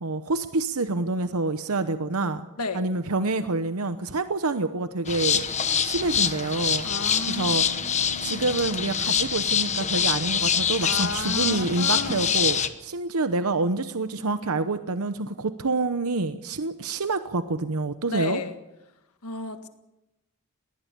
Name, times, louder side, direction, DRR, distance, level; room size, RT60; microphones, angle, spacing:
voice 1, 0.0-2.4 2.7-5.4 5.8-6.9 7.3-18.4, right 3 dB, 75° right, 10 dB, 0.9 m, -27 dB
sound 1, 5.1-12.7, left 7 dB, 30° left, 1.1 m, -25 dB
voice 2, 6.8-8.4 10.8-12.3 18.1-18.6 19.2-19.7, left 3 dB, 85° left, 7 dB, 1.7 m, -33 dB
21.0 x 18.5 x 6.9 m, 0.94 s
head